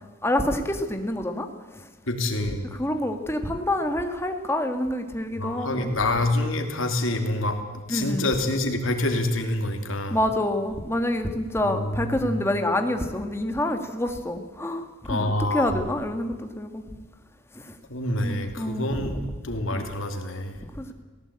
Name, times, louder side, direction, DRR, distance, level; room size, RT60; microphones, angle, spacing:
voice 1, 0.2-1.5 2.8-5.9 7.9-8.3 10.1-16.8 17.6-17.7 18.2-19.1 19.7-19.8 20.8-20.9, left 1 dB, 10° left, 5 dB, 1.7 m, -27 dB
voice 2, 2.1-2.6 5.4-10.2 11.6-12.4 15.1-15.7 17.9-19.2 19.4-20.6, left 1 dB, 70° left, 4 dB, 2.9 m, -27 dB
18.5 x 16.5 x 8.7 m, 1.4 s
head